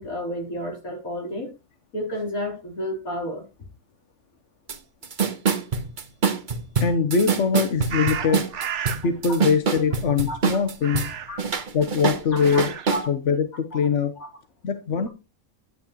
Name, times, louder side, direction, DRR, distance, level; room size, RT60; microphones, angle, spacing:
voice 1, 0.0-1.5 1.9-3.4 8.2-8.3 10.3-10.4 11.3-11.4 12.5-12.6 12.9-13.1 13.7-13.8 14.2-14.3, equal, 75° left, 0 dB, 4.4 m, -30 dB
sound 1, 4.7-4.8 5.0-11.1 11.4-13.0, right 5 dB, 40° right, 1.0 m, -25 dB
voice 2, 6.8-8.4 9.0-11.0 11.7-12.7 13.1-14.1 14.6-15.1, left 6 dB, 60° left, 9 dB, 1.2 m, -22 dB
sound 2, 7.9-9.1 10.8-11.5 12.2-13.0, right 8 dB, 60° right, 1.1 m, -32 dB
11.0 x 9.6 x 3.0 m, 0.27 s
omnidirectional pair, 1.5 m